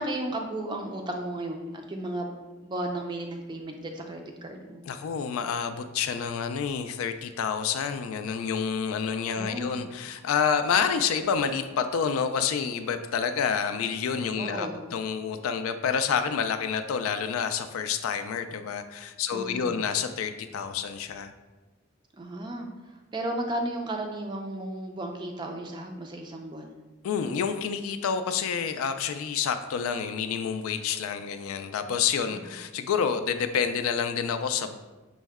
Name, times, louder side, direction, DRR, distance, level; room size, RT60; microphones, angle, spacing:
voice 1, 0.0-2.4 2.6-4.8 9.4-9.8 14.4-14.8 19.3-19.8 22.2-26.7 32.3-32.5, right 1 dB, 20° right, 3 dB, 0.3 m, -34 dB
voice 2, 4.9-21.3 27.0-34.8, left 6 dB, 80° left, 9 dB, 0.3 m, -28 dB
5.4 x 2.1 x 3.5 m, 1.2 s
head